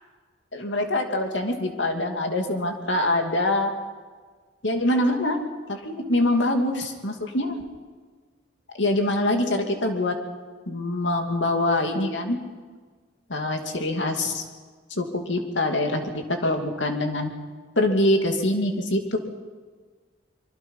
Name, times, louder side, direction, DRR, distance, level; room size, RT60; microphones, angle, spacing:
voice 1, 0.5-3.7 4.6-7.6 8.8-10.2 10.7-12.4 13.3-14.4 14.9-17.3 17.8-19.2, left 1 dB, 75° left, 4 dB, 2.6 m, -24 dB
25.0 x 23.5 x 5.6 m, 1.5 s
head